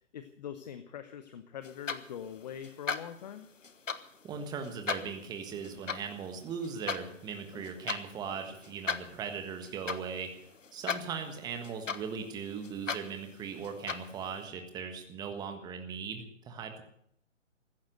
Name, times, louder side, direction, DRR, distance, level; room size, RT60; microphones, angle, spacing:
voice 1, 0.1-3.5, left 9 dB, 35° left, 10 dB, 0.9 m, -43 dB
sound 1, 1.6-14.4, left 5 dB, 85° left, 1.4 m, -40 dB
voice 2, 4.2-10.3 10.7-16.8, right 6 dB, 10° right, 6 dB, 1.5 m, -39 dB
15.5 x 11.5 x 8.0 m, 0.70 s
figure-of-eight pair, 145°, 37 cm